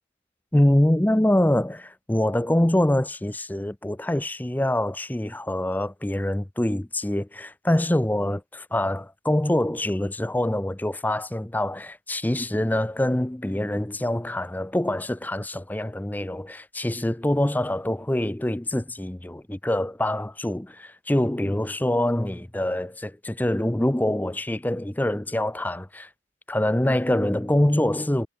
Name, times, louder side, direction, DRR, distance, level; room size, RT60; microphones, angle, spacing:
voice 1, 0.5-26.1 26.5-28.3, left 1 dB, 10° left, 0.5 m, -25 dB
head